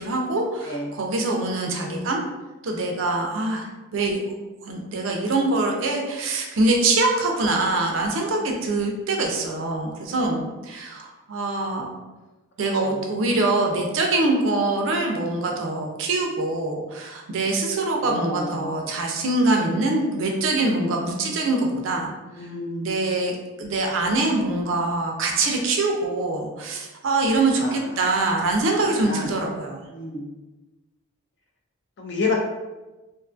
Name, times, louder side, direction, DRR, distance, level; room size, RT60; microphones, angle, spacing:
voice 1, 0.0-2.2 2.6-3.7 3.9-4.2 4.7-11.9 12.6-22.1 22.8-23.3 23.6-29.8, right 2 dB, 60° right, 1 dB, 0.4 m, -24 dB
voice 2, 1.8-2.2 4.6-4.8 18.0-18.8 22.3-23.0 27.6-27.8 29.0-29.3 29.9-30.3 32.0-32.3, left 3 dB, 50° left, 0 dB, 0.4 m, -30 dB
2.5 x 2.3 x 2.4 m, 1.1 s
head